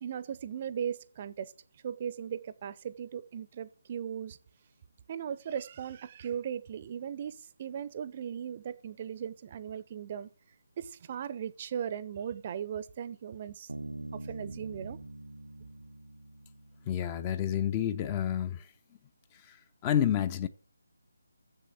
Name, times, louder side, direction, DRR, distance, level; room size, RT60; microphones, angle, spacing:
voice 1, 0.0-1.5 1.8-4.4 5.1-10.3 10.8-15.0, right 8 dB, 30° right, 0.6 m, -38 dB
Bass guitar, 13.7-17.2, right 2 dB, 75° right, 0.7 m, -44 dB
voice 2, 16.9-18.7 19.3-20.5, left 10 dB, 20° left, 0.5 m, -30 dB
7.5 x 6.6 x 7.3 m
figure-of-eight pair, 155°, 0 cm